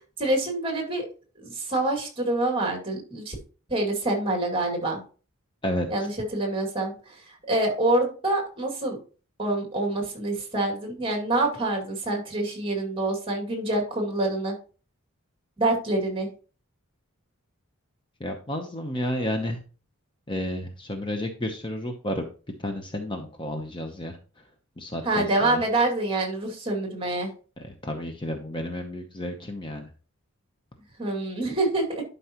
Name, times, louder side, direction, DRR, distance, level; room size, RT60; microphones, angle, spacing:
voice 1, 0.2-1.1 1.4-3.4 3.7-5.0 5.9-9.0 9.4-14.6 15.6-16.3 25.0-27.3 31.0-32.0, right 2 dB, 25° right, 2 dB, 2.4 m, -26 dB
voice 2, 5.6-6.1 18.2-19.6 20.3-22.3 22.6-24.2 24.8-25.6 27.6-29.9, left 1 dB, 20° left, 4 dB, 0.8 m, -31 dB
11.5 x 5.4 x 3.0 m, 0.37 s
head